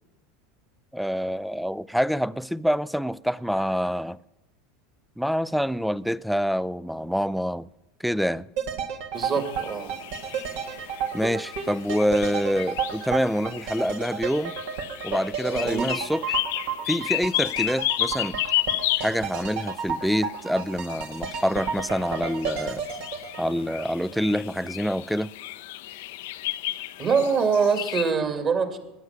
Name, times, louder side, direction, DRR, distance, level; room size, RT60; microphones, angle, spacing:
voice 1, 0.9-4.2 5.2-7.7 8.0-8.5 11.1-14.5 15.0-16.4 16.9-18.4 19.0-22.8 23.4-25.3, equal, ahead, 0.4 m, -26 dB
sound 1, 8.6-24.5 24.8-24.9, right 7 dB, 65° right, 1.6 m, -32 dB
voice 2, 9.1-9.9 15.5-15.9 27.0-28.8, right 5 dB, 35° right, 2.6 m, -24 dB
sound 2, 9.2-28.1, left 16 dB, 70° left, 0.6 m, -33 dB
21.0 x 9.5 x 6.0 m
hypercardioid pair, 85°, 0 cm